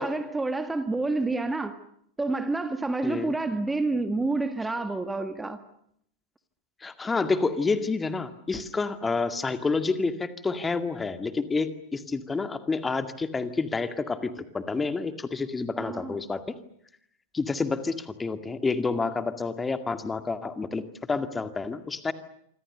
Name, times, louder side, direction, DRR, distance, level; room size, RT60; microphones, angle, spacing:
voice 1, 0.0-1.8 2.2-5.6 15.8-16.2, right 3 dB, 10° right, 1.8 m, -28 dB
voice 2, 3.0-3.3 6.8-16.4 17.3-22.1, left 4 dB, 15° left, 2.1 m, -29 dB
27.0 x 26.0 x 6.8 m
figure-of-eight pair, 90°, 0 cm